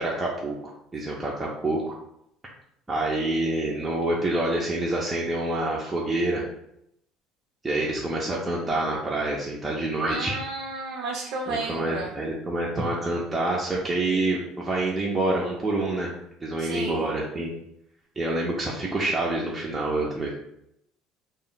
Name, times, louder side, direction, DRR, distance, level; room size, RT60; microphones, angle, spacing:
voice 1, 0.0-2.0 2.9-6.4 7.6-10.4 11.5-16.1 16.4-17.5 18.2-20.3, right 2 dB, 15° right, -4 dB, 0.4 m, -27 dB
voice 2, 10.1-12.1 16.6-17.1, right 3 dB, 70° right, -2 dB, 0.5 m, -32 dB
2.2 x 2.0 x 3.8 m, 0.76 s
cardioid pair, 145°, 0 cm